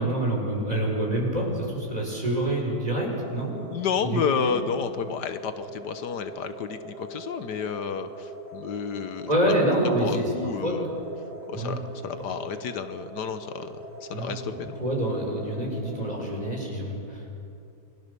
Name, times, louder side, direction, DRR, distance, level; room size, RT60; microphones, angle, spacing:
voice 1, 0.0-3.5 4.0-4.5 9.3-10.3 10.6-11.0 11.5-11.8 14.1-14.3 14.8-17.3, right 1 dB, 20° right, -1 dB, 5.8 m, -27 dB
sound 1, 3.2-16.6, right 1 dB, 80° right, 4.3 m, -42 dB
voice 2, 3.7-9.5 9.8-10.9 11.5-14.8, left 6 dB, 85° left, 10 dB, 1.7 m, -31 dB
28.5 x 21.5 x 6.9 m, 2.5 s
omnidirectional pair, 1.8 m